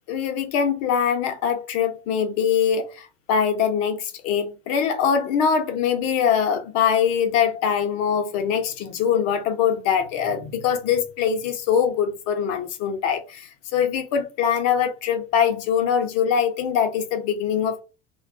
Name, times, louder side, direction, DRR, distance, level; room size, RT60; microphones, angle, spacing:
voice 1, 0.1-17.8, left 7 dB, 40° left, 0.6 m, -23 dB
2.2 x 2.2 x 2.6 m
figure-of-eight pair, 80°, 38 cm